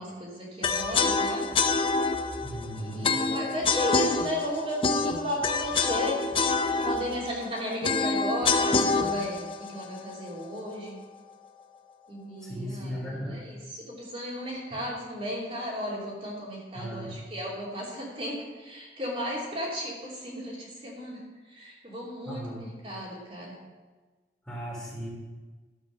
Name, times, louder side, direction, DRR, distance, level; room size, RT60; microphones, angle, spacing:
voice 1, 0.0-1.5 2.7-6.2 6.8-11.0 12.1-21.2 21.5-23.5, equal, 30° right, -5 dB, 3.0 m, -34 dB
sound 1, 0.6-10.7, left 4 dB, 30° left, 0.6 m, -27 dB
voice 2, 2.4-3.1 12.4-13.4 16.7-17.2 22.2-22.6 24.4-25.1, equal, 5° left, -5 dB, 3.1 m, -36 dB
12.5 x 7.9 x 6.3 m, 1.3 s
head